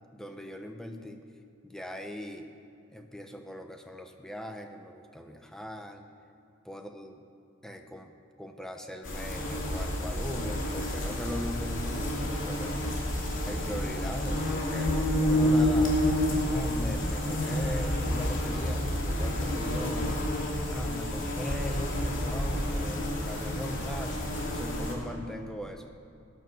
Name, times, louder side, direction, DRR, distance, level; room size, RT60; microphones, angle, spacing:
voice 1, 0.1-1.2 1.6-2.5 2.9-6.0 6.6-7.1 7.6-8.1 8.4-13.0 13.4-20.2 20.7-25.9, equal, 5° left, 4 dB, 0.9 m, -40 dB
sound 1, 9.0-24.9, left 1 dB, 60° left, 2.9 m, -29 dB
18.5 x 9.5 x 6.2 m, 2.5 s
head